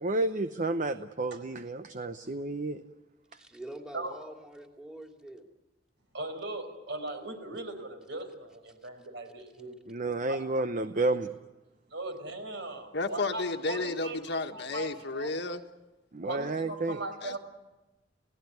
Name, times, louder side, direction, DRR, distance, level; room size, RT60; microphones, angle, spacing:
voice 1, 0.0-2.8 9.9-11.3 16.1-17.0, right 2 dB, 45° right, 0.8 m, -31 dB
voice 2, 3.3-5.4, right 1 dB, 5° right, 2.8 m, -45 dB
voice 3, 6.1-9.8 10.0-10.4 10.9-11.1 11.9-14.2 14.5-14.9 15.1-15.3 16.2-17.4, right 2 dB, 70° right, 4.9 m, -39 dB
voice 4, 12.9-15.6 17.2-17.4, left 2 dB, 65° left, 1.5 m, -32 dB
29.5 x 17.0 x 9.4 m
head